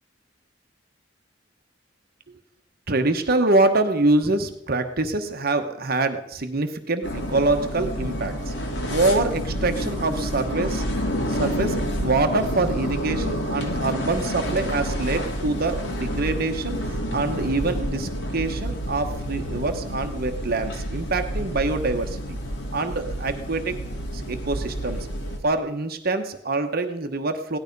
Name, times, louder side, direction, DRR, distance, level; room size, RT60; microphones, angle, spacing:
voice 1, 2.9-8.5 8.9-10.8 11.3-22.4 22.7-23.8 24.1-25.1 25.4-27.6, right 2 dB, 55° right, 6 dB, 1.1 m, -25 dB
sound 1, 7.0-25.4, equal, 80° left, 2.5 m, -29 dB
17.0 x 12.0 x 5.3 m, 0.81 s
head